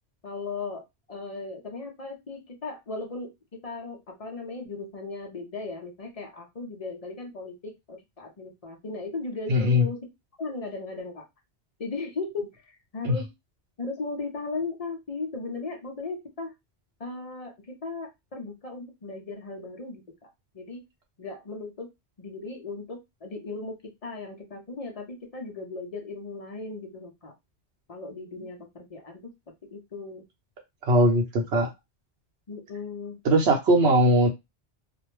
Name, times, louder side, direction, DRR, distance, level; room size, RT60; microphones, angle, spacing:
voice 1, 0.2-3.3 3.6-10.1 10.4-11.3 11.8-13.3 13.8-16.5 17.0-20.8 21.2-21.9 22.2-27.3 27.9-29.3 29.6-30.2 31.4-31.5 32.5-33.2, left 3 dB, 40° left, 2 dB, 0.6 m, -37 dB
voice 2, 9.5-9.8 13.0-13.1 30.8-31.7 33.2-34.3, equal, 70° right, 1 dB, 0.9 m, -20 dB
2.4 x 2.0 x 3.0 m, 0.20 s
omnidirectional pair, 1.2 m